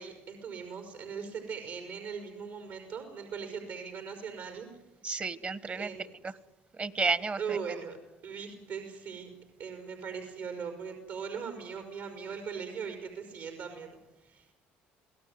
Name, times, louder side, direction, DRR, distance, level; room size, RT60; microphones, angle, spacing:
voice 1, 0.0-4.7 5.7-6.1 7.4-8.0 8.2-9.3 9.6-14.5, right 6 dB, 70° right, 4 dB, 5.2 m, -40 dB
voice 2, 5.0-6.0 6.2-6.3 6.8-7.6, right 4 dB, 30° right, 16 dB, 1.4 m, -31 dB
26.5 x 18.0 x 9.5 m, 0.94 s
supercardioid pair, 90°, 5 cm